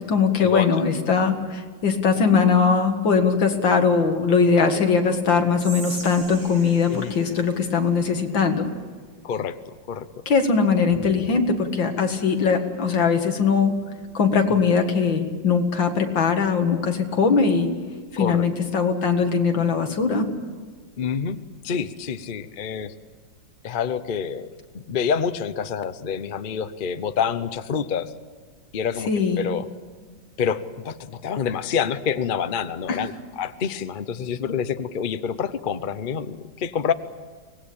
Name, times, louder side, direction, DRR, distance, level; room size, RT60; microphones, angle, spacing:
voice 1, 0.0-8.7 10.3-13.7 14.1-17.7 18.1-20.3 29.1-29.5 32.9-33.0, left 5 dB, 70° left, 5 dB, 2.6 m, -21 dB
Whispering, 5.5-8.8, right 3 dB, 90° right, 4.1 m, -41 dB
voice 2, 9.2-9.6 9.9-10.1 18.2-18.5 21.0-21.4 21.6-22.9 23.6-24.5 24.9-28.1 28.7-29.1 29.4-29.7 30.4-36.9, left 7 dB, 50° left, 11 dB, 0.6 m, -27 dB
24.5 x 19.0 x 8.7 m, 1.5 s
omnidirectional pair, 2.1 m